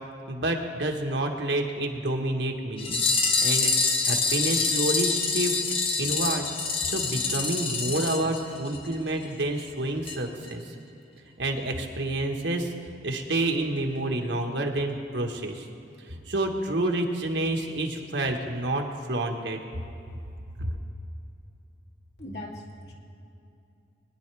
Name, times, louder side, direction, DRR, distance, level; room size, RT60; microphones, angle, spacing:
voice 1, 0.3-3.0 3.4-3.7 4.0-5.6 6.0-6.5 6.9-10.6 11.4-12.7 13.0-15.7 16.1-19.6 20.6-20.8, right 1 dB, 80° right, 2 dB, 1.5 m, -28 dB
sound 1, 2.8-8.9 9.2-9.3 9.6-9.7 10.1-10.2 10.5-10.6, left 4 dB, 30° left, 0.9 m, -26 dB
voice 2, 22.2-22.9, left 1 dB, 65° left, -1 dB, 2.1 m, -39 dB
21.5 x 10.0 x 3.4 m, 2.8 s
head